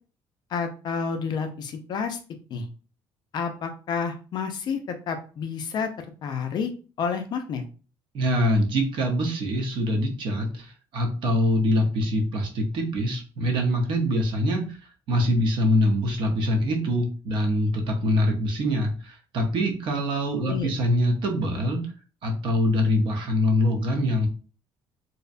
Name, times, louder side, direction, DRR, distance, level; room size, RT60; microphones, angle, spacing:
voice 1, 0.5-2.2 2.5-2.7 3.3-6.7 7.0-7.6 20.4-20.7, left 6 dB, 40° left, 6 dB, 0.4 m, -30 dB
voice 2, 8.1-21.8 22.2-24.3, left 1 dB, 50° right, 3 dB, 0.6 m, -24 dB
2.6 x 2.1 x 2.4 m, 0.36 s
cardioid pair, 160°, 11 cm